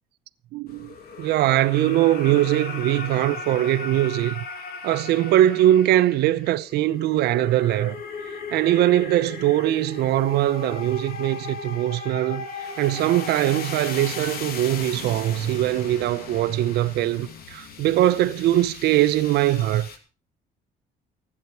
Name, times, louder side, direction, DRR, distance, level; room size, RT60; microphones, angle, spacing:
voice 1, 0.5-4.4 4.8-8.0 8.5-19.9, right 14 dB, 75° right, 0.8 m, -21 dB
sound 1, 0.7-20.0, left 5 dB, 65° left, 2.6 m, -37 dB
16.0 x 11.5 x 4.6 m
cardioid pair, 110°, 17 cm